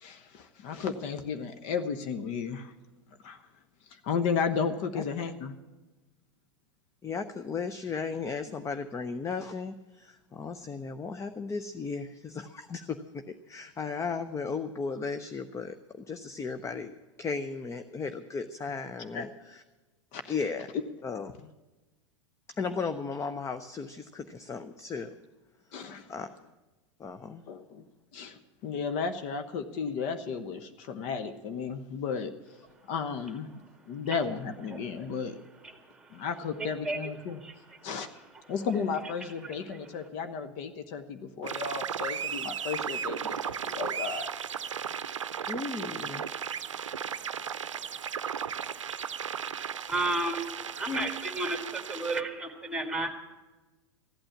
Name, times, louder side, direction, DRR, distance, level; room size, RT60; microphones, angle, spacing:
voice 1, 0.0-2.7 3.2-3.4 3.9-5.5 19.1-19.3 20.1-20.3 25.7-26.1 27.5-27.8 28.1-32.3 32.9-33.5 33.9-35.4 36.1-37.4 37.8-38.2 38.5-44.3, left 6 dB, 45° left, 9 dB, 1.0 m, -34 dB
voice 2, 7.0-16.9 17.2-19.6 20.3-20.7 21.0-21.5 22.6-25.1 26.1-26.3 27.0-27.4 45.5-46.2, left 5 dB, 20° left, 10 dB, 0.7 m, -35 dB
voice 3, 36.6-37.1 37.4-37.5 49.9-50.5 50.8-53.1, right 2 dB, 5° right, 5 dB, 2.0 m, -32 dB
sound 1, 41.4-52.2, right 8 dB, 85° right, 0.6 m, -35 dB
14.5 x 8.9 x 8.5 m, 1.2 s
hypercardioid pair, 100°, 16 cm